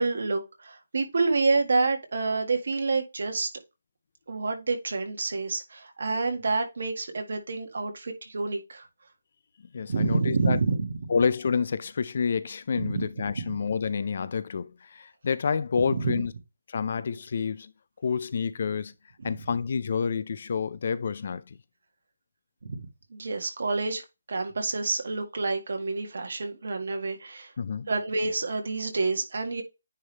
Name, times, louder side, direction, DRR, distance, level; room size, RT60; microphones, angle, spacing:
voice 1, 0.0-3.5 4.3-8.9 9.9-10.9 12.8-13.1 15.9-16.2 19.2-19.3 22.6-27.5 27.9-29.6, right 3 dB, 55° right, 1.8 m, -28 dB
voice 2, 9.7-10.6 11.1-16.3 16.7-17.7 18.0-18.9 19.2-21.6 27.6-27.9, left 6 dB, 40° left, 0.4 m, -28 dB
9.6 x 3.4 x 3.3 m
hypercardioid pair, 175°, 0 cm